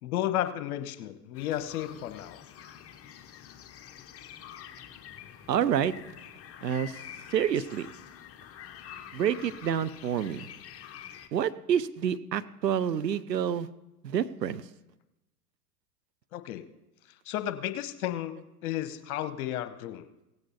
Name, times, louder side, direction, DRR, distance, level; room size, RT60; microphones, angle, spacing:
voice 1, 0.0-2.4 16.3-16.7 17.3-20.1, left 12 dB, 60° left, 11 dB, 1.1 m, -33 dB
sound 1, 1.3-11.3, left 9 dB, 30° left, 1.1 m, -47 dB
voice 2, 5.5-5.9 6.6-7.0 7.3-7.9 9.1-10.5 11.3-13.7 14.0-14.6, right 9 dB, 90° right, 14 dB, 0.7 m, -28 dB
17.5 x 8.1 x 4.2 m, 0.98 s
hypercardioid pair, 95°, 48 cm